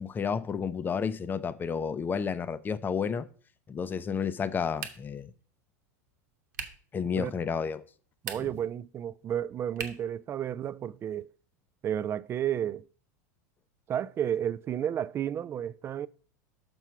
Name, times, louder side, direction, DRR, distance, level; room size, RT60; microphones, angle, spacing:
voice 1, 0.0-3.3 3.7-5.3 6.9-7.8, left 6 dB, 20° left, 0.6 m, -31 dB
sound 1, 4.8-5.3 6.5-6.9 8.1-8.7 9.7-10.1, right 7 dB, 90° right, 1.1 m, -39 dB
voice 2, 8.2-11.3 11.8-12.9 13.9-16.1, right 10 dB, 25° right, 0.3 m, -32 dB
6.2 x 4.4 x 5.8 m
hypercardioid pair, 110°, 9 cm